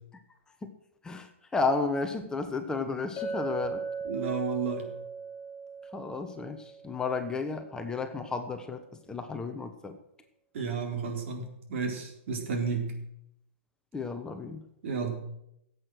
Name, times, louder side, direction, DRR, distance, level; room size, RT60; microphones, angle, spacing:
voice 1, 1.0-3.8 5.9-8.8 9.1-10.0 13.9-14.6, left 4 dB, 10° left, 6 dB, 1.0 m, -32 dB
Chink clink, 3.2-7.6, right 4 dB, 25° left, 3.6 m, -38 dB
voice 2, 4.0-4.9 10.5-12.9 14.8-15.2, right 5 dB, 60° right, 2 dB, 4.0 m, -32 dB
15.0 x 8.2 x 6.3 m, 0.80 s
hypercardioid pair, 135°, 7 cm